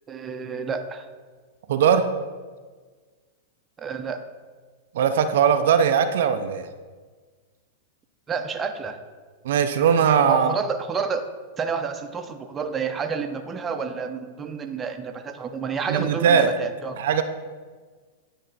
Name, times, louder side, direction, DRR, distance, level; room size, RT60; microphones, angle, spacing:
voice 1, 0.1-1.1 3.8-4.2 8.3-9.0 10.3-11.3 11.6-17.0, right 5 dB, 20° right, 6 dB, 0.6 m, -29 dB
voice 2, 1.7-2.1 4.9-6.7 9.4-10.5 15.9-16.5 17.0-17.2, right 7 dB, 70° right, 8 dB, 0.4 m, -20 dB
9.5 x 3.3 x 4.0 m, 1.5 s
hypercardioid pair, 120°, 0 cm